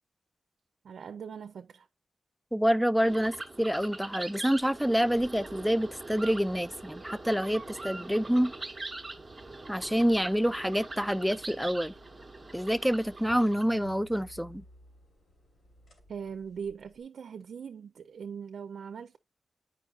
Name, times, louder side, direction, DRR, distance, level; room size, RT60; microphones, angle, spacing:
voice 1, 0.8-1.9 16.1-19.2, right 7 dB, 85° right, 0.4 m, -41 dB
voice 2, 2.5-8.5 9.7-11.9 12.5-14.6, equal, ahead, 0.3 m, -27 dB
sound 1, 3.0-13.6, right 2 dB, 20° right, 0.8 m, -43 dB
sound 2, 4.2-17.0, left 1 dB, 65° left, 2.5 m, -57 dB
8.1 x 5.2 x 2.4 m
wide cardioid pair, 130°, 0 cm